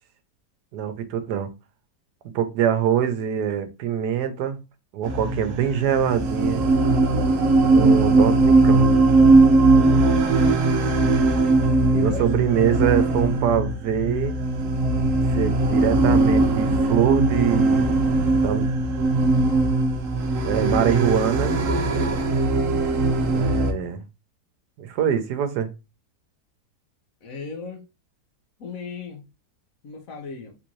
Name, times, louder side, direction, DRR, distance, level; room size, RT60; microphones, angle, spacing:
voice 1, 0.7-1.5 2.3-4.6 4.9-6.7 7.6-9.0 9.7-10.1 11.9-14.3 15.3-18.0 18.4-18.7 20.4-21.6 23.3-24.0 24.8-25.7, right 9 dB, 80° right, 1.2 m, -24 dB
sound 1, 5.0-23.7, right 2 dB, 60° right, 0.9 m, -19 dB
voice 2, 7.3-8.7 10.2-10.6 11.9-12.3 27.2-27.9 28.6-29.2 29.8-30.6, left 4 dB, 60° left, 1.1 m, -37 dB
3.6 x 2.6 x 3.0 m
omnidirectional pair, 1.8 m